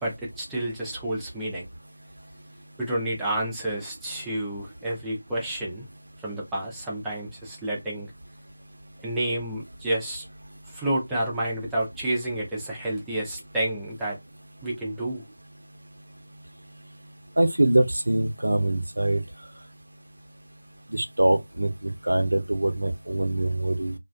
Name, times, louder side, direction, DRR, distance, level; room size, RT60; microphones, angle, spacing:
voice 1, 0.0-1.6 2.8-5.9 6.2-8.1 9.0-10.2 10.7-14.2 14.6-15.2, right 1 dB, 5° right, 0.5 m, -30 dB
voice 2, 17.4-19.2 20.9-23.9, right 1 dB, 65° right, 0.6 m, -23 dB
2.4 x 2.3 x 2.3 m
figure-of-eight pair, 165°, 0 cm